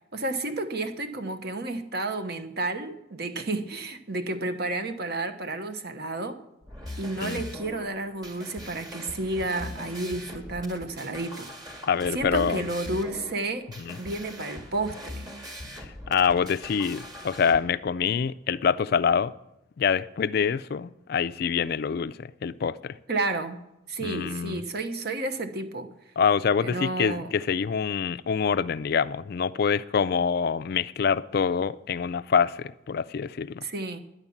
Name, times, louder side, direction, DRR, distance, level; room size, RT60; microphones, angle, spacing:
voice 1, 0.1-6.4 7.0-11.5 12.1-13.7 14.0-15.3 23.1-23.6 23.9-25.9 26.6-27.3 33.6-34.0, right 2 dB, 55° right, 1.1 m, -31 dB
sound 1, 6.6-17.6, left 1 dB, 20° right, 1.8 m, -41 dB
voice 2, 11.8-12.7 13.8-14.0 15.8-19.3 19.8-23.0 24.0-24.6 26.2-33.6, left 6 dB, 55° left, 0.3 m, -26 dB
11.0 x 9.8 x 7.2 m
head